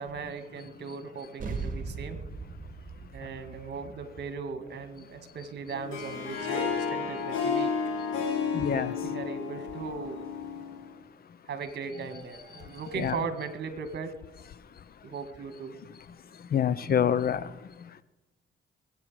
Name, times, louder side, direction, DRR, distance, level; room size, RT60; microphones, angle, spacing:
voice 1, 0.0-2.2 3.1-7.7 8.7-10.3 11.5-14.1 15.0-15.7, right 5 dB, 60° right, 1.9 m, -38 dB
sound 1, 1.4-6.2, right 4 dB, 40° right, 2.3 m, -40 dB
Harp, 5.7-10.9, left 6 dB, 85° left, 3.3 m, -32 dB
voice 2, 8.5-8.9 12.5-12.6 12.9-13.2 16.3-18.0, left 8 dB, 50° left, 0.8 m, -28 dB
21.5 x 8.7 x 5.0 m
cardioid pair, 90°, 20 cm